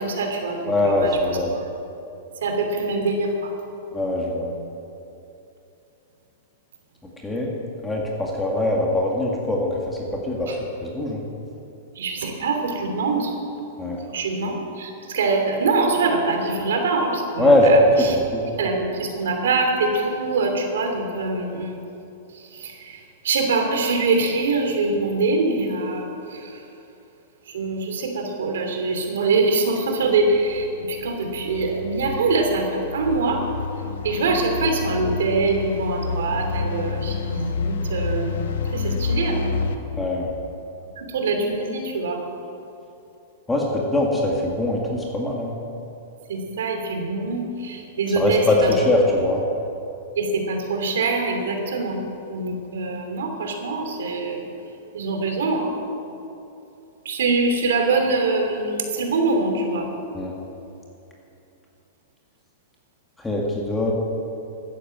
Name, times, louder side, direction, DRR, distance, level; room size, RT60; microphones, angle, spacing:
voice 1, 0.0-1.4 2.4-3.5 10.5-10.6 11.9-13.3 14.1-18.2 18.6-21.7 22.3-26.6 27.5-33.4 34.0-38.4 38.7-39.5 41.0-42.2 46.3-48.7 50.2-54.5 54.9-55.7 57.0-59.9, right 3 dB, 80° right, 3 dB, 3.0 m, -24 dB
voice 2, 0.6-1.5 3.9-4.5 7.2-7.5 7.8-10.5 10.8-11.2 13.8-14.0 17.4-18.4 40.0-40.4 43.5-45.6 48.2-49.4 60.1-60.3 63.2-63.9, left 1 dB, 10° left, -2 dB, 2.0 m, -21 dB
sound 1, 30.1-39.8, left 4 dB, 75° left, 1.3 m, -29 dB
12.5 x 10.5 x 7.9 m, 2.8 s
hypercardioid pair, 140°, 0 cm